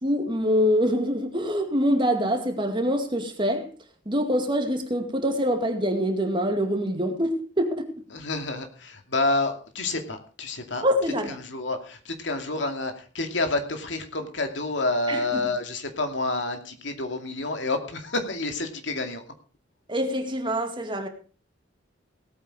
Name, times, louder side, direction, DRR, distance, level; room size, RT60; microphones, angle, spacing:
voice 1, 0.0-3.7 4.1-8.0 10.8-11.4 15.1-15.4 19.9-21.1, equal, 25° right, 2.2 m, -25 dB
voice 2, 8.1-10.8 11.3-19.2, left 2 dB, 70° left, 2.5 m, -29 dB
18.0 x 8.8 x 5.0 m
head